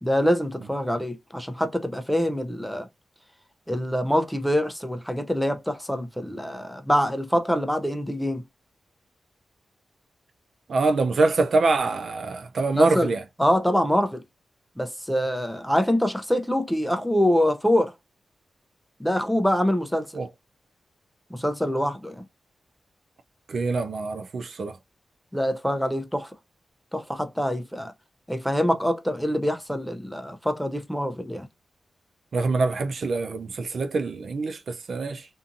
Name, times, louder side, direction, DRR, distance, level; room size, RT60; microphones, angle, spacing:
voice 1, 0.0-2.9 3.7-8.4 12.7-13.1 13.4-14.2 14.8-17.9 19.0-20.1 21.3-22.2 25.3-26.3 26.9-27.9 28.3-31.5, equal, 5° left, 0.5 m, -25 dB
voice 2, 10.7-13.2 20.1-20.3 23.5-24.8 32.3-35.3, right 3 dB, 70° right, 0.4 m, -24 dB
2.6 x 2.6 x 2.5 m
cardioid pair, 60°, 0 cm